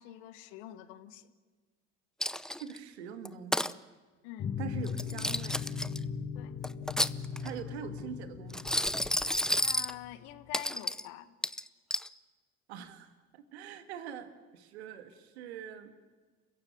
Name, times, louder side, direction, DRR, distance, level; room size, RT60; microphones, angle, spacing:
voice 1, 0.0-1.3 4.2-4.6 6.3-6.6 9.6-11.3, left 14 dB, 70° left, 13 dB, 1.6 m, -46 dB
Coin (dropping), 2.2-2.8 3.2-3.7 4.9-6.0 6.6-7.6 8.5-9.9 10.5-11.0 11.4-12.1, left 1 dB, ahead, 0.7 m, -31 dB
voice 2, 2.5-3.8 4.6-5.6 7.4-8.9 12.7-15.9, right 8 dB, 80° right, 9 dB, 2.2 m, -44 dB
sound 1, 4.4-10.3, left 7 dB, 35° left, 1.2 m, -39 dB
29.0 x 16.0 x 9.3 m, 1.4 s
hypercardioid pair, 65°, 32 cm